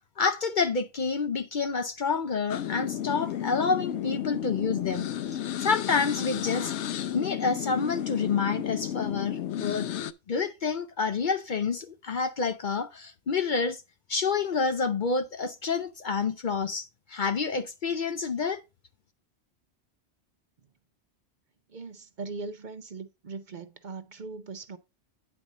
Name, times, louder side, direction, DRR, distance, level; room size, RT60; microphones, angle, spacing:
voice 1, 0.2-5.1 5.6-6.7 7.1-9.9 10.3-13.8 14.1-18.6, left 5 dB, 55° left, 0.7 m, -28 dB
sound 1, 2.5-10.1, left 10 dB, 85° left, 0.9 m, -33 dB
voice 2, 21.7-24.8, right 4 dB, 50° right, 0.8 m, -40 dB
9.6 x 4.3 x 4.9 m
omnidirectional pair, 1.1 m